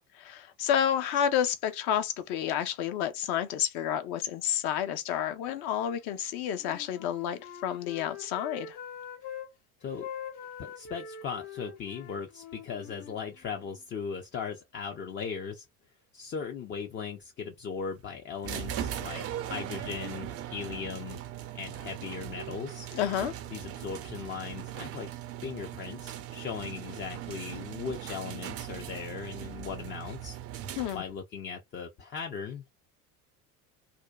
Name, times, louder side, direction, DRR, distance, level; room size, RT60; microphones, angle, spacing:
voice 1, 0.0-8.8 22.9-23.3 30.8-31.0, left 9 dB, 55° left, 0.7 m, -30 dB
Wind instrument woodwind instrument, 6.5-9.5 10.0-13.8, left 7 dB, 70° left, 1.3 m, -44 dB
voice 2, 10.6-15.7 16.1-21.2 21.5-22.9 23.5-25.1 25.4-30.4 30.9-32.7, left 6 dB, 25° left, 0.4 m, -38 dB
sound 1, 18.4-31.2, right 11 dB, 35° right, 0.4 m, -39 dB
2.6 x 2.1 x 2.2 m
hypercardioid pair, 70°, 45 cm